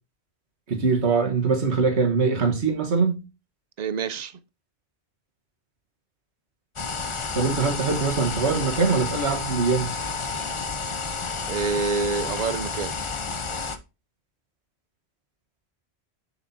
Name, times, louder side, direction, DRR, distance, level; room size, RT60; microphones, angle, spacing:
voice 1, 0.7-3.2 7.3-9.9, right 4 dB, 90° right, 1.7 m, -22 dB
voice 2, 3.8-4.4 11.5-13.0, right 5 dB, 55° right, 0.5 m, -27 dB
sound 1, 6.8-13.8, left 4 dB, 35° left, 0.6 m, -30 dB
7.1 x 5.8 x 2.7 m
omnidirectional pair, 1.1 m